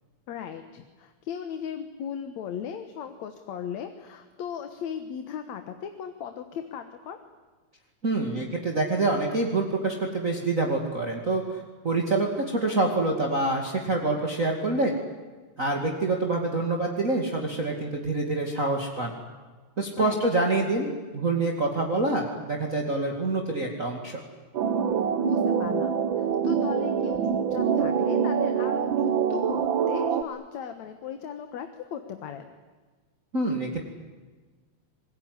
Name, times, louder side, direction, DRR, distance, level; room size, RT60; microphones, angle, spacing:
voice 1, 0.3-7.2 20.0-20.2 25.2-32.5, left 8 dB, 70° left, 7 dB, 2.6 m, -37 dB
voice 2, 8.0-14.9 15.6-19.1 19.8-24.2 33.3-33.8, right 2 dB, 30° right, 1 dB, 2.6 m, -26 dB
sound 1, 24.5-30.2, right 7 dB, 60° right, 1.4 m, -25 dB
26.0 x 21.5 x 9.7 m, 1.4 s
omnidirectional pair, 3.4 m